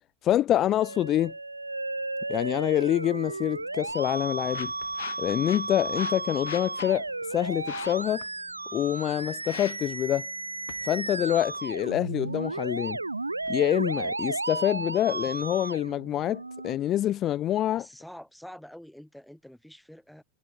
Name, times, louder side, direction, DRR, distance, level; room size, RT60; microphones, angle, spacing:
voice 1, 0.2-1.3 2.3-4.7 5.2-8.2 8.7-10.3 10.8-13.0 13.5-17.9, left 12 dB, 30° left, 0.4 m, -26 dB
Musical instrument, 0.8-16.7, right 2 dB, 80° right, 0.4 m, -34 dB
sound 1, 3.5-13.5, left 14 dB, 55° left, 1.3 m, -46 dB
voice 2, 17.7-20.2, equal, ahead, 6.1 m, -47 dB
figure-of-eight pair, 90°, 0 cm